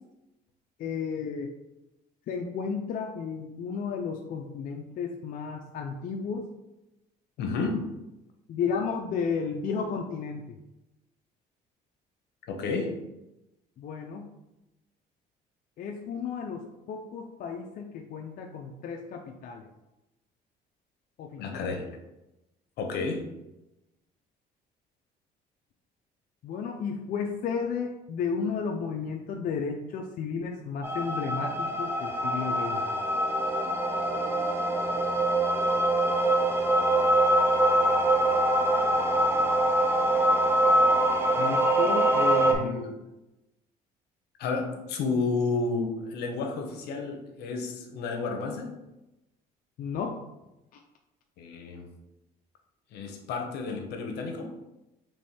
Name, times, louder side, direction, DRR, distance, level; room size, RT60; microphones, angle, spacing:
voice 1, 0.8-1.5 2.3-6.4 8.5-10.6 13.8-14.2 15.8-19.7 21.2-21.7 26.4-32.8 41.4-42.9 49.8-50.2 50.7-50.8, left 5 dB, 55° left, 1 dB, 0.5 m, -33 dB
voice 2, 7.4-7.8 12.5-13.0 21.4-21.8 22.8-23.3 42.5-43.1 44.4-48.8 51.4-51.9 52.9-54.6, left 4 dB, 75° left, 4 dB, 0.8 m, -31 dB
sound 1, 30.8-42.5, right 1 dB, 15° right, 0.6 m, -24 dB
3.4 x 3.1 x 4.2 m, 0.94 s
cardioid pair, 110°, 17 cm